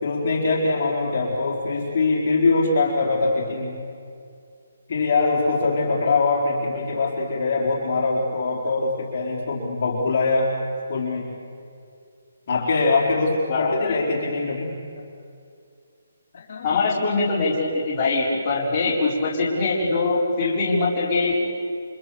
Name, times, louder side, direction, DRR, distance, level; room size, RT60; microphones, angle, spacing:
voice 1, 0.0-3.8 4.9-10.5 10.9-11.3 12.5-14.8 16.3-16.8, left 3 dB, 40° left, -3 dB, 4.0 m, -23 dB
voice 2, 13.5-13.9 16.6-21.3, left 3 dB, 20° left, -7 dB, 4.5 m, -22 dB
29.5 x 25.0 x 7.0 m, 2.4 s
hypercardioid pair, 175°, 0 cm